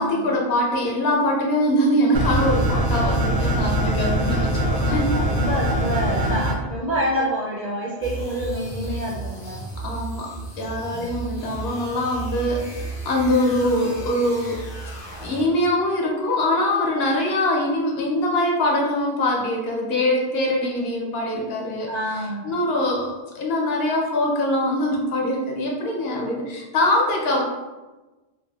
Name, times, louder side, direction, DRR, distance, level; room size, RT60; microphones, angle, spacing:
voice 1, 0.0-5.1 9.8-10.3 10.6-14.6 15.2-27.4, left 1 dB, 70° left, -1 dB, 0.8 m, -23 dB
sound 1, 2.1-6.5, right 1 dB, 80° right, 0.9 m, -22 dB
voice 2, 5.1-9.6 21.9-22.5, equal, 50° right, -5 dB, 0.5 m, -27 dB
sound 2, 8.0-15.7, right 3 dB, 35° left, 0.5 m, -34 dB
3.1 x 2.4 x 2.3 m, 1.2 s
omnidirectional pair, 1.1 m